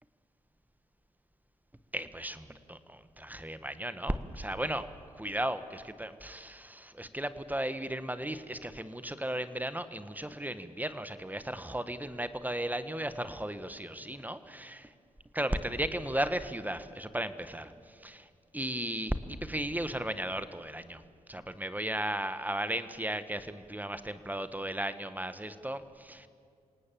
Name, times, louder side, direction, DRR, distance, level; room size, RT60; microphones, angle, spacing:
voice 1, 1.9-4.9 5.2-14.9 15.3-17.7 18.0-18.3 18.5-21.0 21.3-26.3, right 1 dB, 10° right, 11 dB, 1.5 m, -35 dB
27.5 x 18.5 x 7.7 m, 2.3 s
supercardioid pair, 40°, 14 cm